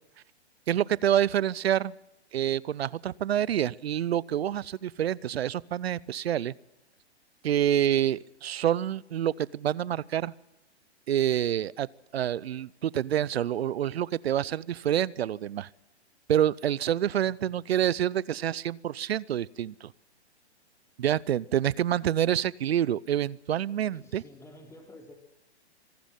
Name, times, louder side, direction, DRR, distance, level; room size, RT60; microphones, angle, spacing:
voice 1, 0.7-1.9 2.3-6.5 7.4-10.3 11.1-11.9 12.1-15.7 16.3-19.9 21.0-24.2, right 10 dB, 65° right, 24 dB, 0.7 m, -27 dB
voice 2, 17.2-17.6 23.9-25.1, left 1 dB, 10° left, 3 dB, 3.8 m, -51 dB
25.5 x 12.5 x 9.0 m, 0.95 s
hypercardioid pair, 125°, 33 cm